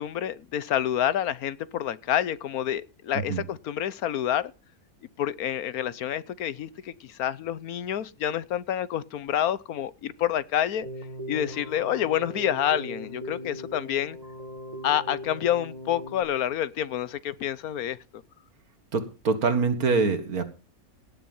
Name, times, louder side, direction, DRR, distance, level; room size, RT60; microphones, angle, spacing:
voice 1, 0.0-4.5 5.2-10.9 11.3-14.2 14.8-18.2, left 10 dB, 90° left, 1.3 m, -28 dB
Keyboard (musical), 10.8-16.2, equal, 30° right, 2.0 m, -39 dB
voice 2, 18.9-20.4, right 4 dB, 85° right, 2.3 m, -24 dB
17.5 x 7.1 x 5.5 m
omnidirectional pair, 1.5 m